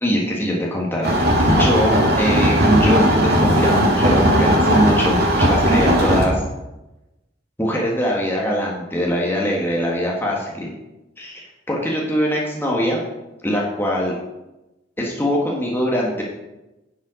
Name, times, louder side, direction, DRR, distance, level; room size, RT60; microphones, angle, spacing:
voice 1, 0.0-6.4 7.6-10.7 11.2-11.4 11.7-13.0 13.4-14.2 15.0-16.2, equal, 10° left, -3 dB, 1.6 m, -22 dB
sound 1, 1.0-6.3, equal, 60° right, 2.3 m, -16 dB
10.5 x 7.5 x 5.0 m, 0.99 s
head